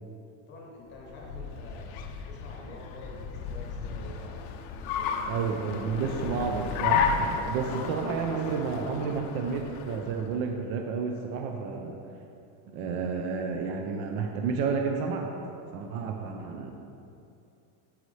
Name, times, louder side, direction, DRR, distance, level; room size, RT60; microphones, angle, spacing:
voice 1, 0.5-4.5 4.9-6.9 7.6-8.4 12.7-12.9, left 1 dB, 25° left, -3 dB, 0.9 m, -48 dB
Car, 0.9-10.5, left 6 dB, 45° left, 0.6 m, -33 dB
voice 2, 5.3-12.0 12.7-15.3 15.7-16.7, right 5 dB, 40° right, 3 dB, 0.5 m, -31 dB
9.4 x 8.3 x 3.2 m, 2.6 s
cardioid pair, 180°, 42 cm